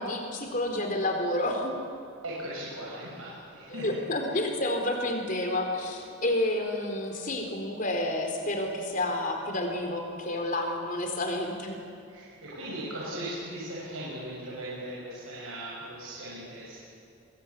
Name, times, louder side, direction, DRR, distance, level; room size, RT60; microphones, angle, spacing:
voice 1, 0.0-1.7 3.7-11.7, left 1 dB, 40° left, 3 dB, 4.0 m, -30 dB
voice 2, 2.2-4.0 12.1-16.8, right 1 dB, 90° right, -6 dB, 6.6 m, -38 dB
28.5 x 21.5 x 8.5 m, 2.7 s
head